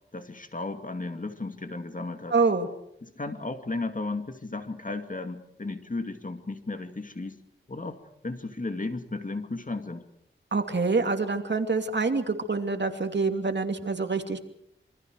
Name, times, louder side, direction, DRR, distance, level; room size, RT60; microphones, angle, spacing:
voice 1, 0.1-2.3 3.0-7.4 7.7-8.0 8.2-10.0, left 3 dB, 40° left, 7 dB, 2.5 m, -34 dB
voice 2, 2.3-2.7 10.5-14.4, right 4 dB, 60° right, 6 dB, 2.6 m, -26 dB
27.0 x 24.5 x 4.9 m, 0.76 s
wide cardioid pair, 65°, 21 cm